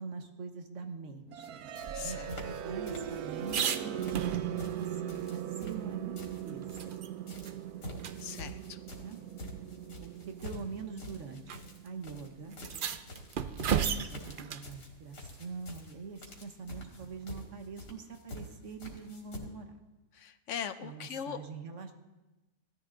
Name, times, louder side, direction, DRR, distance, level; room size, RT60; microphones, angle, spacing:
voice 1, 0.0-1.6 2.0-3.9 4.7-6.2 6.4-7.0 8.9-9.2 10.0-11.5 11.8-12.6 14.1-19.7 20.8-21.9, right 4 dB, 50° right, 6 dB, 1.4 m, -44 dB
sound 1, 1.3-13.2, right 10 dB, 70° right, 1.1 m, -39 dB
sound 2, 1.4-1.5 1.8-2.6 2.9-3.8 4.0-7.0 7.3-19.4, left 1 dB, 90° left, 2.8 m, -47 dB
voice 2, 1.9-2.3 8.2-8.9 20.1-21.4, left 8 dB, 60° left, 11 dB, 0.9 m, -40 dB
sound 3, 1.9-4.9 5.2-5.3 5.7-7.1 7.5-7.6 8.0-8.2 9.2-9.3 10.2-10.5 11.5-11.6 11.9-12.0 12.5-14.7 17.0-17.4, right 7 dB, 85° right, 0.4 m, -36 dB
16.0 x 13.5 x 3.9 m, 1.1 s
omnidirectional pair, 1.7 m